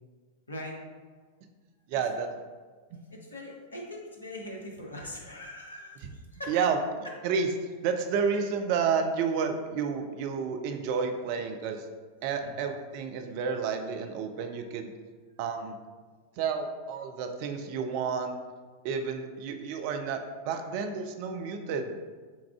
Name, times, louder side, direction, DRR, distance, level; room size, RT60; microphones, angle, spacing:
voice 1, 1.9-2.3 2.9-3.0 6.0-6.1 6.5-6.8 7.2-7.5 7.8-11.9 12.2-14.9 15.4-15.8 16.4-18.4 18.8-21.9, right 6 dB, 45° right, 5 dB, 0.4 m, -30 dB
voice 2, 3.1-6.5 12.4-12.5, left 1 dB, 75° left, 0 dB, 0.7 m, -41 dB
6.9 x 2.4 x 2.3 m, 1.4 s
figure-of-eight pair, 90°, 0 cm